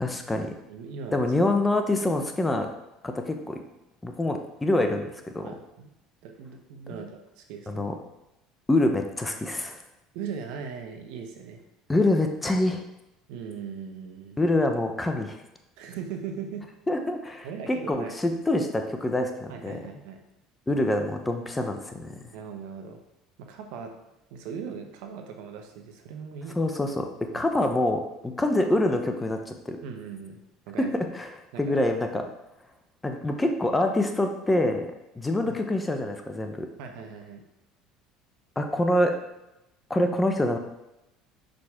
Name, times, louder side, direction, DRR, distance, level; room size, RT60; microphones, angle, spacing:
voice 1, 0.0-0.5 1.1-2.7 3.0-3.6 4.0-5.5 6.9-7.0 7.7-7.9 8.7-9.8 11.9-12.8 14.4-15.4 16.9-19.7 20.7-22.1 26.6-27.1 27.3-29.8 30.8-30.9 31.1-31.3 31.6-32.2 33.0-34.9 35.2-36.7 38.6-39.1 39.9-40.6, left 1 dB, 15° left, 5 dB, 0.9 m, -25 dB
voice 2, 0.7-1.3 5.4-5.9 6.2-7.9 10.1-11.6 13.3-14.5 15.8-16.7 17.4-18.1 19.5-20.2 22.3-23.0 23.4-23.9 24.3-26.6 27.3-27.5 29.8-30.4 30.7-30.9 31.5-31.9 35.4-35.6 36.8-37.4, right 6 dB, 70° right, 4 dB, 0.9 m, -39 dB
6.0 x 5.1 x 3.7 m, 0.90 s
hypercardioid pair, 80°, 0 cm